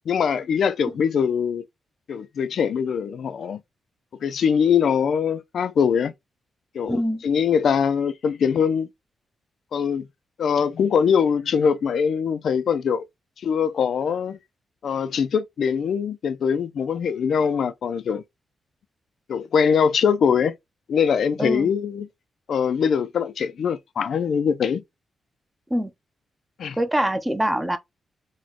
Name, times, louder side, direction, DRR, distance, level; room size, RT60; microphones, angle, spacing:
voice 1, 0.1-1.6 2.1-3.6 4.2-6.1 6.7-8.9 9.7-10.1 10.4-13.1 13.4-14.4 14.8-18.2 19.3-20.5 20.9-22.1 22.5-24.8 26.6-26.8, left 7 dB, 70° left, 0.4 m, -22 dB
voice 2, 6.9-7.2 21.4-21.7 25.7-25.9 26.8-27.8, equal, 10° right, 0.6 m, -24 dB
4.1 x 2.2 x 2.9 m
cardioid pair, 100°, 0 cm